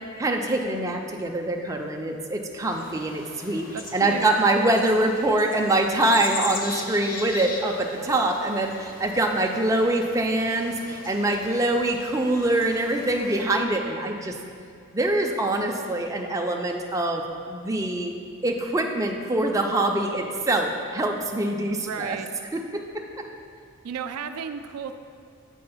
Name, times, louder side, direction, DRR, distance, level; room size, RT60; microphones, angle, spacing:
voice 1, 0.2-14.4 14.9-18.1 18.4-22.2 22.5-22.6 22.9-23.0, right 2 dB, 15° right, 2 dB, 0.4 m, -24 dB
sound 1, 2.7-13.4, left 3 dB, 40° left, 0.7 m, -40 dB
voice 2, 3.7-4.4 21.7-22.3 23.8-25.0, right 6 dB, 90° right, 8 dB, 0.4 m, -33 dB
7.6 x 3.7 x 5.6 m, 2.3 s
head